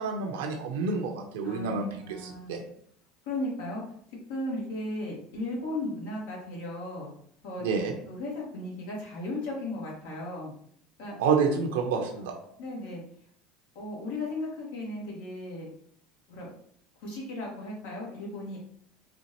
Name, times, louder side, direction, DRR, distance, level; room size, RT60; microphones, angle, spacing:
voice 1, 0.0-1.9 2.2-2.6 7.6-7.9 11.2-12.4, right 5 dB, 85° right, 3 dB, 0.7 m, -28 dB
voice 2, 1.4-2.5 3.2-4.0 4.3-7.1 7.4-7.6 8.1-10.5 11.0-11.1 12.6-13.0 13.7-15.7 16.3-16.5 17.0-18.6, left 1 dB, 85° left, -4 dB, 1.5 m, -36 dB
4.4 x 2.5 x 2.8 m, 0.63 s
supercardioid pair, 95°, 0 cm